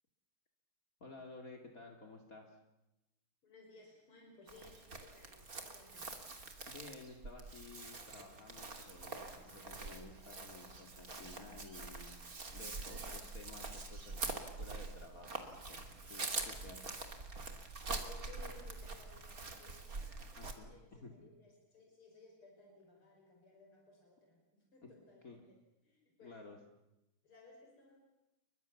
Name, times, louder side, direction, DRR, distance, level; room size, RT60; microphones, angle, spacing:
voice 1, 1.0-2.6 6.7-12.2 12.5-15.8 16.1-17.3 20.4-20.7 21.0-21.1 24.8-24.9 25.2-25.4 26.2-26.6, left 3 dB, 40° left, 2 dB, 2.8 m, -54 dB
voice 2, 3.4-6.4 17.8-25.6 25.8-26.4 27.2-28.0, left 3 dB, 85° left, 0 dB, 6.2 m, -60 dB
Chirp tweet, 4.5-20.5, right 3 dB, 40° right, 3.2 m, -45 dB
30.0 x 24.0 x 7.2 m, 0.95 s
omnidirectional pair, 2.3 m